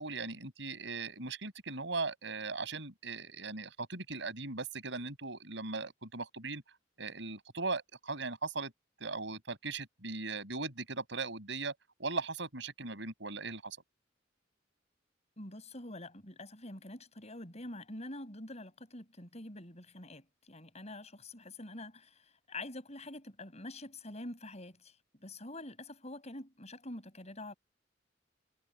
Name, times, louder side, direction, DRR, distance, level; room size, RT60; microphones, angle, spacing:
voice 1, 0.0-6.6 7.0-8.7 9.0-11.7 12.0-13.8, right 3 dB, 75° right, 6.0 m, -39 dB
voice 2, 15.4-22.2 22.5-27.5, left 1 dB, 35° left, 7.0 m, -46 dB
head